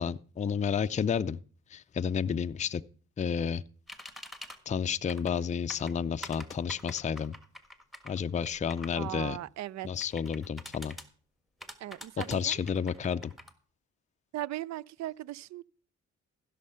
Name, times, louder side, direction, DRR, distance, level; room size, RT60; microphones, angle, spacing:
voice 1, 0.0-1.4 1.7-2.8 3.2-3.6 4.7-7.4 8.0-9.4 9.8-10.9 12.3-13.3, left 7 dB, 25° left, 0.4 m, -31 dB
sound 1, 3.9-4.6 5.1-5.4 5.7-9.0 10.0-11.1 11.6-13.5, left 1 dB, ahead, 1.4 m, -45 dB
voice 2, 9.0-9.9 11.8-12.6 14.3-15.6, right 14 dB, 65° right, 0.5 m, -38 dB
15.5 x 6.5 x 5.6 m
cardioid pair, 90°, 30 cm